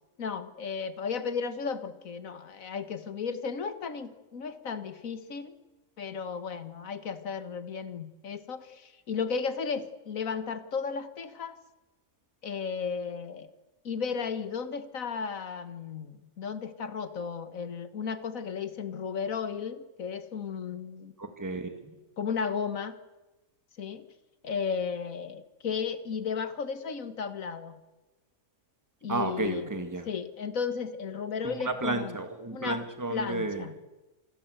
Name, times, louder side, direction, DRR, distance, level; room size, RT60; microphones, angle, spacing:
voice 1, 0.2-5.6 6.0-11.6 12.4-13.5 13.8-21.1 22.2-23.0 23.8-24.1 24.4-27.8 29.0-29.7 30.0-32.2 32.5-32.8 33.1-33.7, left 6 dB, 70° left, 12 dB, 1.9 m, -34 dB
voice 2, 21.2-21.9 29.1-30.0 31.6-33.6, right 3 dB, 15° right, 7 dB, 1.9 m, -32 dB
26.0 x 20.5 x 8.0 m, 1.1 s
omnidirectional pair, 1.5 m